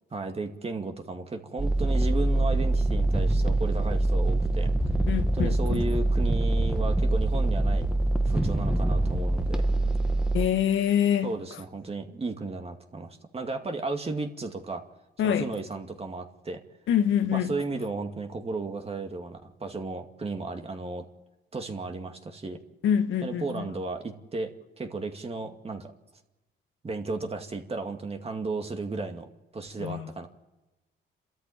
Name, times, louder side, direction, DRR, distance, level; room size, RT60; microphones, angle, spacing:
voice 1, 0.1-4.7 5.3-7.9 8.2-9.7 11.2-14.8 15.2-16.6 17.3-21.1 21.5-22.6 23.2-24.5 24.8-25.9 26.8-30.3, right 3 dB, 30° right, 2.2 m, -34 dB
sound 1, 1.6-10.5, right 2 dB, 5° right, 1.7 m, -24 dB
voice 2, 5.1-5.8 10.3-11.3 15.2-15.5 16.9-17.5 22.8-23.7 29.8-30.1, left 9 dB, 80° left, 1.6 m, -25 dB
29.5 x 13.5 x 8.7 m
cardioid pair, 90°, 20 cm